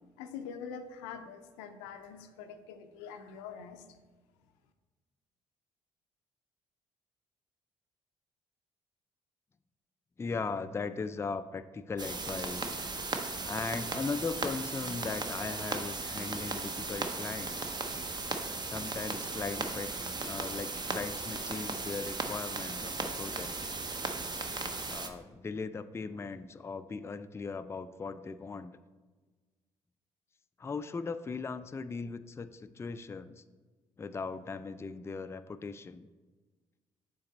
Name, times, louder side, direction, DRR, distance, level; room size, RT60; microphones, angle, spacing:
voice 1, 0.2-3.8, left 6 dB, 85° left, 8 dB, 0.5 m, -44 dB
voice 2, 10.2-12.8 13.4-17.8 18.6-19.9 20.2-23.5 24.9-28.8 30.6-33.4 34.0-36.1, left 4 dB, 20° left, 11 dB, 0.3 m, -38 dB
sound 1, 12.0-25.1, right 3 dB, 30° right, 0.7 m, -36 dB
6.5 x 4.0 x 4.0 m, 1.3 s
hypercardioid pair, 50°, 14 cm